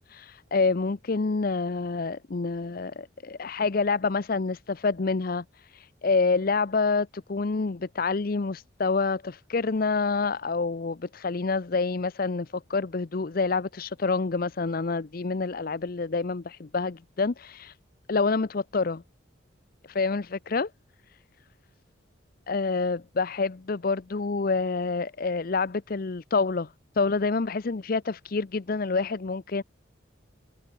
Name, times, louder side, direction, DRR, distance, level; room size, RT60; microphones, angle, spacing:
voice 1, 0.0-17.7 18.1-19.0 19.9-20.7 22.5-29.6, left 4 dB, 45° left, 0.6 m, -27 dB
head